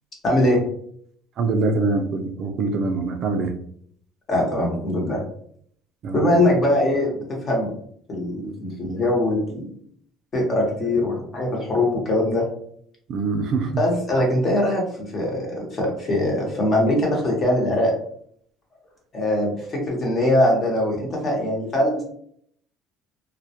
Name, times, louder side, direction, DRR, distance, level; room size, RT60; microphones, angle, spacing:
voice 1, 0.2-0.6 4.3-5.2 6.1-7.7 8.1-9.7 10.3-12.4 13.8-17.9 19.1-22.0, left 1 dB, 35° left, -1 dB, 0.9 m, -22 dB
voice 2, 1.4-3.5 6.0-6.4 13.1-13.8, right 3 dB, 55° right, 5 dB, 0.3 m, -24 dB
2.1 x 2.1 x 2.7 m, 0.64 s
supercardioid pair, 110°, 0 cm